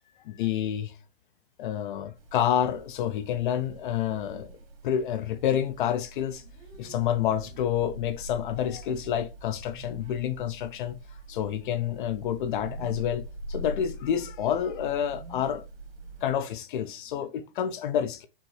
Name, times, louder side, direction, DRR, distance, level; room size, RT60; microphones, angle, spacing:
voice 1, 0.2-1.0 1.6-4.5 4.8-6.4 6.8-11.0 11.3-15.6 16.2-18.3, left 10 dB, 50° left, 0.5 m, -29 dB
sound 1, 2.1-16.3, right 1 dB, 60° right, 1.8 m, -43 dB
5.3 x 2.6 x 3.2 m
hypercardioid pair, 135°, 32 cm